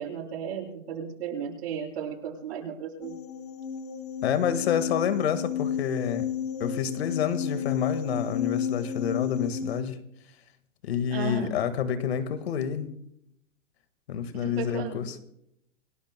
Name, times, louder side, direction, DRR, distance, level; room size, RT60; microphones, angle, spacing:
voice 1, 0.0-3.2 11.1-11.5 14.3-15.0, right 7 dB, 55° right, -3 dB, 7.1 m, -35 dB
sound 1, 3.0-9.8, left 8 dB, 20° left, 0.9 m, -32 dB
voice 2, 4.2-6.3 6.6-10.0 10.8-12.9 14.1-15.2, left 8 dB, 55° left, 10 dB, 1.7 m, -28 dB
29.0 x 18.0 x 2.2 m, 0.76 s
hypercardioid pair, 175°, 38 cm